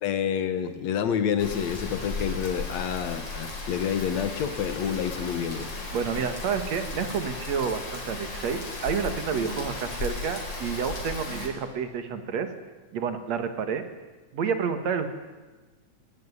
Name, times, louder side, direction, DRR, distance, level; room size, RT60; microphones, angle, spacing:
voice 1, 0.0-5.7, left 8 dB, 70° left, 10 dB, 2.5 m, -28 dB
Rain, 1.4-11.5, left 2 dB, 35° left, 4.3 m, -35 dB
voice 2, 5.9-12.5 12.9-13.8 14.3-15.1, right 6 dB, 65° right, 9 dB, 2.8 m, -29 dB
19.5 x 18.5 x 9.7 m, 1.2 s
omnidirectional pair, 3.4 m